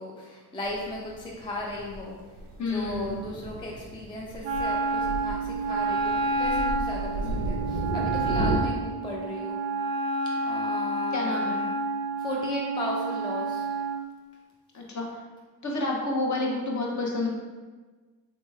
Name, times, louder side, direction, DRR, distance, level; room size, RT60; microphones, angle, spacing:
voice 1, 0.0-2.2 2.6-9.6 10.4-11.3 12.2-13.7, left 1 dB, 10° left, -3 dB, 0.5 m, -36 dB
Thunder, 0.6-8.6, right 2 dB, 90° right, 0.6 m, -34 dB
voice 2, 2.6-3.2 7.2-7.5 11.1-11.7 14.7-15.1 15.6-17.3, left 2 dB, 40° left, -2 dB, 0.8 m, -29 dB
Wind instrument woodwind instrument, 4.4-14.0, right 3 dB, 50° right, 0.5 m, -29 dB
3.1 x 3.0 x 2.3 m, 1.3 s
supercardioid pair, 60°, 46 cm